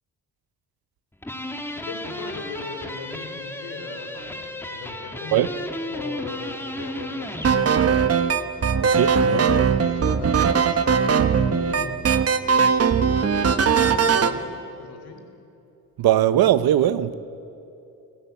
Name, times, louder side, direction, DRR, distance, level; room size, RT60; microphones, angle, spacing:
sound 1, 1.2-7.6, left 1 dB, 5° left, 1.9 m, -34 dB
voice 1, 1.9-4.4 4.7-7.7 9.0-11.9 12.8-14.5 14.8-15.2, left 4 dB, 85° left, 3.8 m, -38 dB
sound 2, 7.4-14.4, right 6 dB, 40° right, 1.2 m, -19 dB
voice 2, 8.8-9.4 16.0-17.1, right 12 dB, 80° right, 1.0 m, -20 dB
28.5 x 16.5 x 8.4 m
cardioid pair, 100°, 37 cm